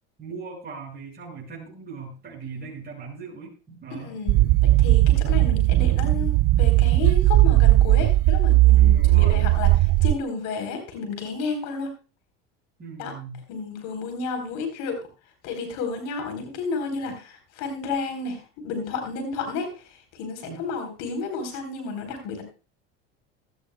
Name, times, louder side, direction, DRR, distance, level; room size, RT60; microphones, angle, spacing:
voice 1, 0.2-4.2 8.7-9.5 12.8-13.4 20.4-20.6, right 5 dB, 30° right, -3 dB, 6.0 m, -39 dB
voice 2, 3.9-9.7 10.0-11.9 13.0-13.1 13.5-15.0 15.4-19.7 20.1-22.4, left 4 dB, 65° left, 4 dB, 4.1 m, -31 dB
sound 1, 4.3-10.1, right 16 dB, 50° right, 0.5 m, -17 dB
16.5 x 13.5 x 2.3 m, 0.34 s
supercardioid pair, 90°, 32 cm